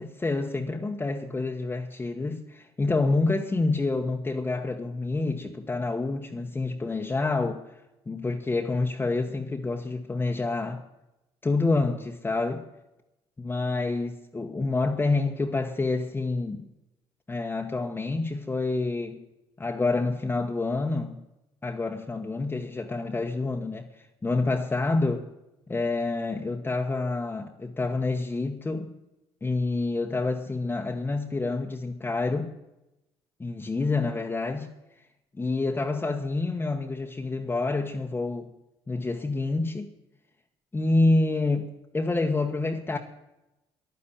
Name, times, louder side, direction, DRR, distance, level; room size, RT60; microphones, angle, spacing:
voice 1, 0.0-7.6 8.1-10.8 11.4-12.7 13.4-16.7 17.3-19.2 19.6-21.2 21.6-25.3 25.7-28.9 29.4-32.6 33.4-34.7 35.3-38.5 38.9-39.9 40.7-43.0, left 3 dB, 20° left, 1.2 m, -28 dB
10.5 x 9.9 x 8.7 m
cardioid pair, 90°, 11 cm